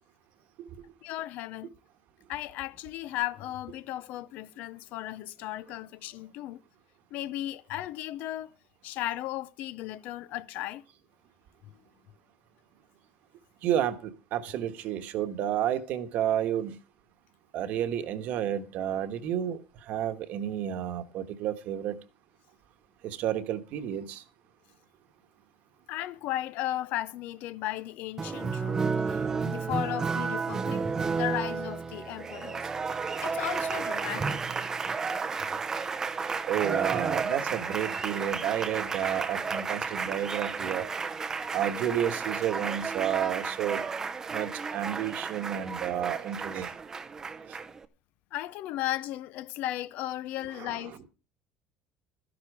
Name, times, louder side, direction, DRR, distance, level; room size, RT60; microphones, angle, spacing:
voice 1, 1.0-1.7 2.3-6.6 7.1-8.5 8.8-10.8 14.5-14.6 25.9-32.7 33.2-34.4 48.3-51.0, left 14 dB, 50° left, 0.5 m, -35 dB
voice 2, 13.6-16.8 17.5-19.6 19.9-22.0 23.0-24.2 36.5-40.9 41.5-43.8 44.3-46.7 50.6-50.7, right 10 dB, 45° right, 1.3 m, -31 dB
Applause, 28.2-47.8, right 5 dB, 15° right, 0.6 m, -32 dB
13.5 x 10.5 x 4.8 m
cardioid pair, 175°, 4 cm